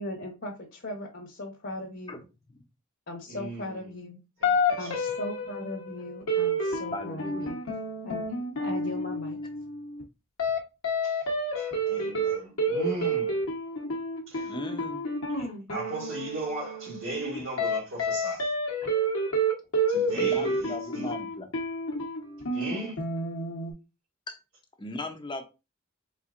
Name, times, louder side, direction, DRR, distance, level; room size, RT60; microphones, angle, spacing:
voice 1, 0.0-2.2 3.1-4.2 4.8-7.6 8.0-8.2 8.6-9.4, left 1 dB, 60° left, 1.0 m, -38 dB
voice 2, 3.3-3.6 4.4-5.0 11.0-11.2 11.6-13.4 14.3-14.5 15.3-18.5 19.9-21.1 22.5-22.9, right 1 dB, 80° right, 1.8 m, -37 dB
sound 1, 4.4-10.0 10.4-10.6 10.8-23.7, right 1 dB, 85° left, 1.1 m, -29 dB
voice 3, 6.9-7.5 14.4-15.0 20.1-21.5 24.3-24.4 24.8-25.4, left 2 dB, 25° left, 0.7 m, -37 dB
4.3 x 3.8 x 2.5 m
head